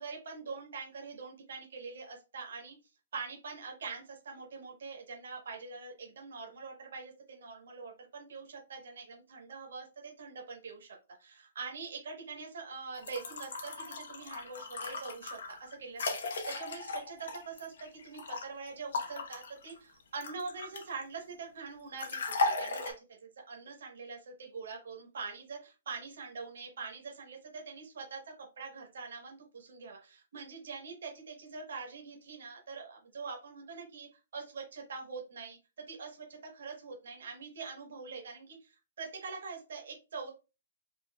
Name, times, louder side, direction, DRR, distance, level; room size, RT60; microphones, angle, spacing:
voice 1, 0.0-2.8 3.1-22.9 23.2-40.3, right 4 dB, 65° right, 1 dB, 1.1 m, -44 dB
sound 1, 12.9-18.4 18.9-21.0 22.0-22.9, left 3 dB, 65° left, 0.9 m, -36 dB
4.5 x 2.7 x 2.3 m, 0.30 s
hypercardioid pair, 170°, 0 cm